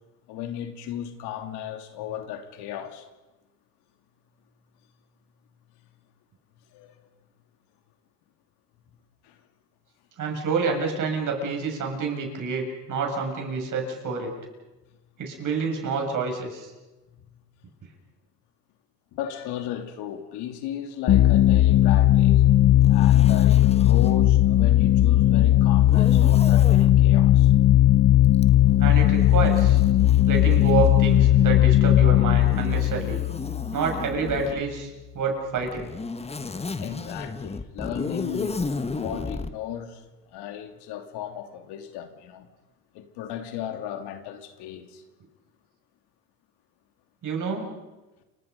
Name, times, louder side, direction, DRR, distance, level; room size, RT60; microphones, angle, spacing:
voice 1, 0.3-3.1 6.7-7.0 9.2-9.4 19.1-22.5 22.9-27.6 36.8-40.0 40.3-42.5 42.9-45.0, left 10 dB, 75° left, 6 dB, 3.0 m, -35 dB
voice 2, 10.2-14.3 15.2-16.7 28.8-29.8 30.3-33.2 33.7-34.9 35.1-35.9 47.2-47.7, right 5 dB, 50° right, 2 dB, 7.2 m, -28 dB
sound 1, 21.1-34.4, left 13 dB, 45° left, 0.8 m, -18 dB
Zipper (clothing), 22.8-24.2 25.8-26.9 28.3-31.6 32.4-34.6 35.6-39.5, left 3 dB, 15° left, 1.5 m, -35 dB
29.5 x 25.5 x 5.5 m, 1.1 s
cardioid pair, 110°, 40 cm